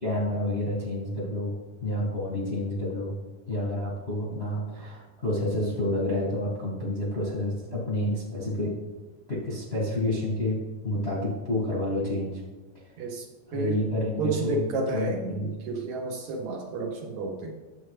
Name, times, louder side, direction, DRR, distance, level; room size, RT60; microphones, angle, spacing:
voice 1, 0.0-3.2 3.5-8.8 9.3-12.4 12.7-12.9 13.5-14.6 14.9-15.5, left 1 dB, 35° left, -5 dB, 1.0 m, -29 dB
voice 2, 13.0-13.8 14.2-17.5, right 3 dB, 70° right, 2 dB, 1.9 m, -31 dB
10.0 x 7.6 x 3.2 m, 1.2 s
omnidirectional pair, 3.8 m